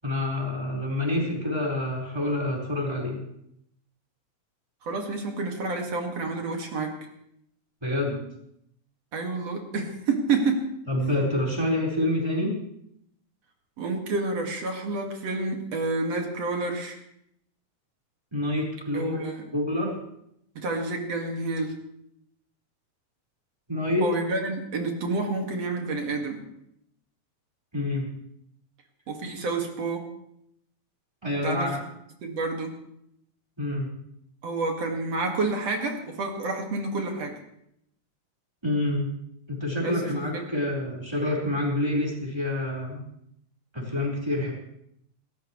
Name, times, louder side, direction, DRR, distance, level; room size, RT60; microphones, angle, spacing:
voice 1, 0.0-3.2 7.8-8.2 10.9-12.6 18.3-19.2 19.5-20.0 23.7-24.1 27.7-28.1 31.2-31.8 33.6-33.9 38.6-39.1 39.5-43.0 43.7-44.5, left 1 dB, 10° right, -3 dB, 4.6 m, -27 dB
voice 2, 4.8-7.0 9.1-10.7 13.8-17.0 18.9-19.4 20.6-21.8 24.0-26.4 29.1-30.1 31.4-31.7 32.2-32.7 34.4-37.4 39.8-40.0 40.3-40.5, right 3 dB, 60° right, 2 dB, 3.1 m, -29 dB
27.5 x 14.0 x 3.2 m, 0.75 s
omnidirectional pair, 3.3 m